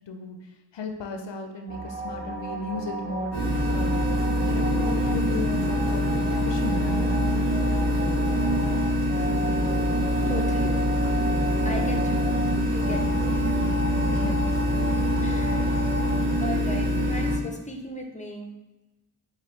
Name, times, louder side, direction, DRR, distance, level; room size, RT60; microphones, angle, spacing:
voice 1, 0.1-4.1 4.5-7.4 14.1-14.4 14.8-15.2 15.6-15.8, left 3 dB, 75° left, 3 dB, 0.5 m, -35 dB
sound 1, 1.7-16.2, right 1 dB, 20° right, 0.6 m, -34 dB
sound 2, 3.3-17.4, equal, 65° right, 1.2 m, -24 dB
voice 2, 10.3-10.9 11.6-12.3 12.7-13.5 15.2-15.8 16.4-18.5, equal, 15° left, 2 dB, 0.5 m, -36 dB
4.2 x 2.7 x 3.1 m, 0.99 s
wide cardioid pair, 55°, 43 cm